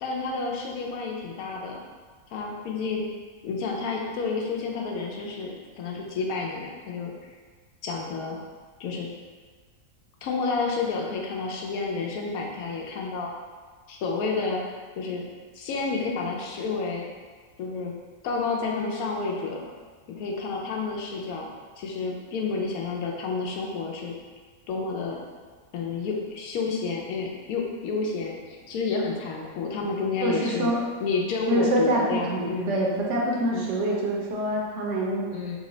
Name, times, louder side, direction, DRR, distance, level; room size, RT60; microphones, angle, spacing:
voice 1, 0.0-1.8 2.3-3.1 3.4-7.3 7.8-8.4 8.8-9.1 10.2-13.3 13.9-14.6 15.0-15.2 15.6-17.1 17.6-17.9 18.2-19.7 20.1-21.5 21.8-24.1 24.7-25.2 25.7-30.7 31.0-32.8 33.5-33.7 35.3-35.6, left 4 dB, 80° left, -1 dB, 1.0 m, -30 dB
voice 2, 30.2-30.8 31.5-35.3, right 1 dB, 65° right, -3 dB, 0.8 m, -25 dB
3.0 x 2.1 x 3.7 m, 1.5 s
omnidirectional pair, 1.5 m